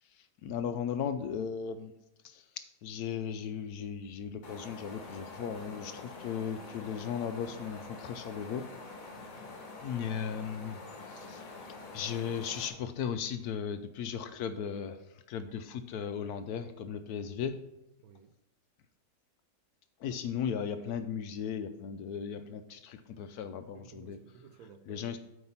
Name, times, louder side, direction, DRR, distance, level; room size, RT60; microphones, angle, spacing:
voice 1, 0.1-1.9 2.2-8.6 9.8-17.6 20.0-24.2 24.9-25.2, left 7 dB, 70° left, 1.0 m, -37 dB
sound 1, 4.4-12.7, left 3 dB, 50° left, 1.7 m, -46 dB
voice 2, 9.2-9.5 18.0-18.4 23.7-25.2, right 6 dB, 70° right, 0.9 m, -55 dB
8.1 x 4.7 x 5.6 m
omnidirectional pair, 1.9 m